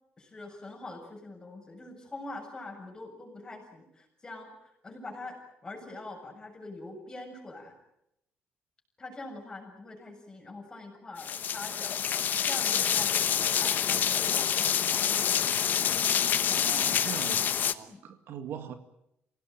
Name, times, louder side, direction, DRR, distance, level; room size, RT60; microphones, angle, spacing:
voice 1, 0.2-7.7 9.0-12.0 12.4-15.1 17.8-18.0, left 2 dB, 15° left, 7.1 m, -44 dB
sound 1, 11.2-17.7, left 9 dB, 45° left, 1.0 m, -27 dB
voice 2, 16.6-18.7, right 8 dB, 65° right, 2.1 m, -41 dB
28.0 x 17.5 x 9.2 m
cardioid pair, 165°, 4 cm